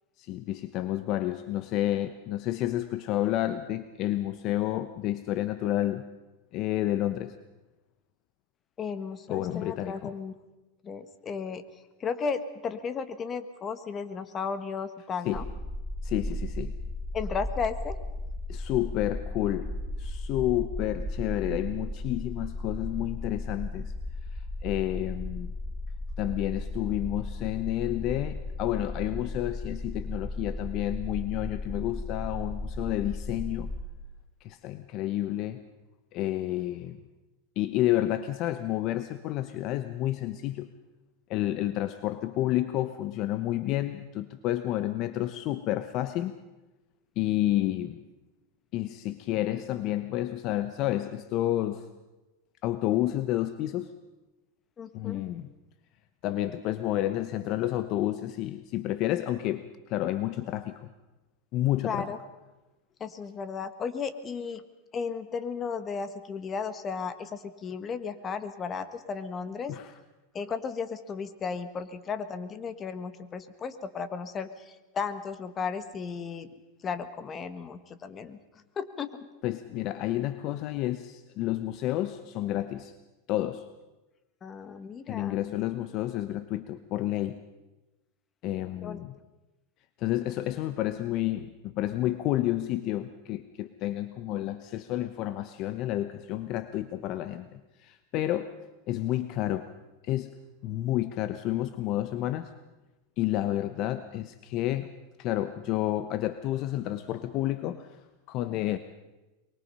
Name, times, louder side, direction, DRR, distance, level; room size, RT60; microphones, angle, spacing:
voice 1, 0.2-6.0 6.5-7.3 9.3-10.1 15.2-15.4 16.0-16.7 18.5-19.7 20.0-23.9 24.6-25.5 26.2-33.7 34.4-35.6 36.1-37.0 37.6-40.7 41.3-46.3 47.2-48.0 48.7-51.8 52.6-53.9 54.9-55.5 56.2-60.9 61.5-62.1 69.7-69.9 79.4-82.9 83.3-83.6 85.1-87.4 88.4-89.1 90.0-98.5 98.9-99.7 100.0-100.3 100.6-102.5 103.2-104.9 105.2-107.9 108.3-108.8, left 14 dB, 45° left, 12 dB, 1.0 m, -30 dB
voice 2, 8.8-10.3 10.8-11.6 12.0-15.5 17.1-17.9 54.8-55.2 61.8-62.2 63.0-64.6 64.9-69.7 70.3-76.5 76.8-78.4 78.7-79.1 84.4-85.7 88.8-89.1, left 5 dB, 25° left, 11 dB, 1.6 m, -34 dB
sound 1, 15.3-33.8, left 1 dB, 20° right, 2.0 m, -35 dB
23.5 x 23.5 x 5.6 m, 1.1 s
supercardioid pair, 135°, 0 cm